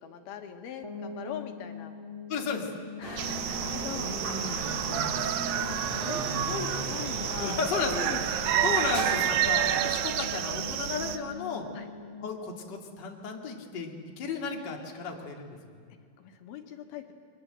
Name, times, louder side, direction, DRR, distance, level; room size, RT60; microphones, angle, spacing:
voice 1, 0.0-1.9 3.0-4.1 5.5-7.6 7.9-8.7 11.7-11.9 16.2-17.1, left 7 dB, 90° left, 5 dB, 3.5 m, -40 dB
sound 1, 0.8-13.7, left 3 dB, 5° right, 2.4 m, -43 dB
voice 2, 2.3-2.7 3.9-5.2 7.4-7.9 8.6-11.7 12.2-15.6, left 5 dB, 35° left, 1 dB, 2.5 m, -34 dB
sound 2, 3.0-9.9, right 1 dB, 45° right, 6.0 m, -38 dB
sound 3, 3.2-11.2, right 11 dB, 75° right, 2.6 m, -30 dB
30.0 x 23.0 x 7.8 m, 2.2 s
omnidirectional pair, 4.3 m